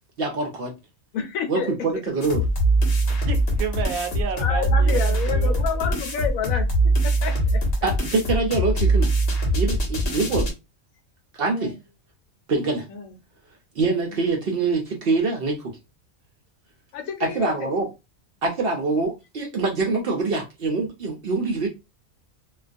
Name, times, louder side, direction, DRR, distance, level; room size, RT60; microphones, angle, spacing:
voice 1, 0.2-0.7 1.5-2.4 7.8-9.1 9.5-10.5 11.3-11.7 12.5-12.9 13.8-15.7 17.2-17.9 18.4-21.7, right 3 dB, 65° right, 0.6 m, -24 dB
voice 2, 1.1-1.7 4.4-7.6 11.5-11.8 12.9-13.1 14.1-14.2 16.9-17.7, left 7 dB, 85° left, 1.1 m, -30 dB
sound 1, 2.2-10.5, right 1 dB, 55° left, 0.8 m, -22 dB
voice 3, 3.0-5.5, right 7 dB, 90° right, 1.0 m, -31 dB
2.3 x 2.2 x 2.5 m
omnidirectional pair, 1.4 m